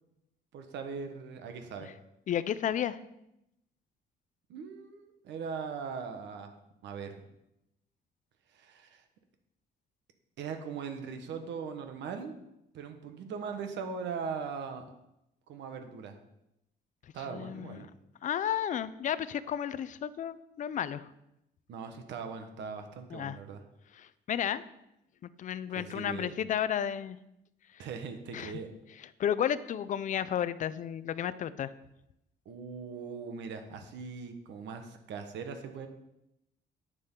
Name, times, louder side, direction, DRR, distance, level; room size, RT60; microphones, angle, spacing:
voice 1, 0.5-1.9 4.5-6.5 6.8-7.2 8.5-9.0 10.4-12.4 12.7-14.8 15.5-16.2 17.1-17.9 21.7-23.6 25.7-26.3 27.8-28.7 32.4-35.9, right 5 dB, 75° right, 6 dB, 1.3 m, -40 dB
voice 2, 2.3-3.0 17.3-17.8 18.2-21.1 23.1-23.4 24.0-24.6 25.4-27.2 28.3-28.5 29.2-31.7, left 9 dB, 45° left, 15 dB, 0.5 m, -32 dB
9.8 x 9.6 x 3.8 m, 0.85 s
cardioid pair, 160°, 18 cm